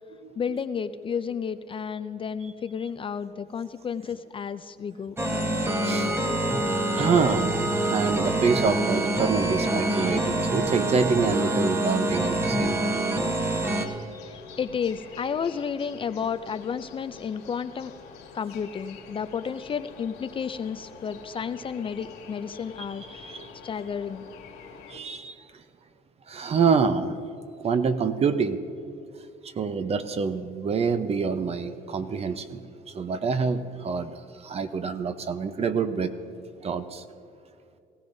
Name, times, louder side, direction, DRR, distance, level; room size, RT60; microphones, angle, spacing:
voice 1, 0.4-5.2 14.2-17.9 18.3-23.4 23.6-24.3, left 6 dB, 30° left, 12 dB, 0.4 m, -32 dB
sound 1, 5.2-13.9, right 1 dB, 15° right, 1.1 m, -26 dB
voice 2, 5.8-6.1 6.9-7.6 7.9-13.0 23.1-23.5 24.9-25.3 26.3-27.2 27.6-28.6 29.6-32.6 32.9-36.1 36.6-37.0, right 5 dB, 40° right, 10 dB, 0.8 m, -26 dB
sound 2, 13.7-25.0, left 5 dB, 85° left, 2.3 m, -46 dB
18.5 x 16.0 x 2.7 m, 2.6 s
cardioid pair, 110°, 17 cm